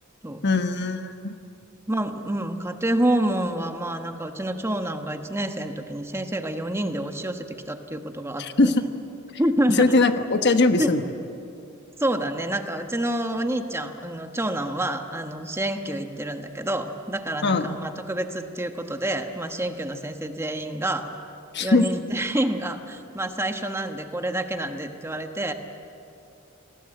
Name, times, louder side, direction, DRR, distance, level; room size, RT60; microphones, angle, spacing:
voice 1, 0.4-1.3 8.4-8.8 9.8-11.0 17.4-17.6 21.5-21.9, left 3 dB, 55° left, 8 dB, 1.2 m, -20 dB
voice 2, 1.9-8.7 9.4-9.9 10.8-10.9 12.0-21.1 21.6-25.5, right 1 dB, 15° right, 6 dB, 1.3 m, -28 dB
28.0 x 19.0 x 7.8 m, 2.7 s
head